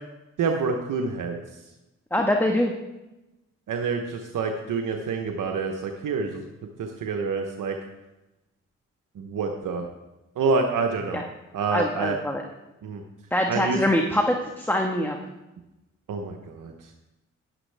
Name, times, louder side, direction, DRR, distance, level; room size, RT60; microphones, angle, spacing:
voice 1, 0.4-1.4 3.7-6.4 6.8-7.7 9.2-9.9 10.4-11.2 11.5-12.2 12.8-13.0 13.5-13.8 16.1-16.7, right 4 dB, 80° right, 3 dB, 1.0 m, -27 dB
voice 2, 2.1-2.7 11.1-11.2 11.7-12.4 13.3-15.2, left 1 dB, 5° left, 2 dB, 1.4 m, -24 dB
11.0 x 11.0 x 3.4 m, 0.99 s
supercardioid pair, 40°, 31 cm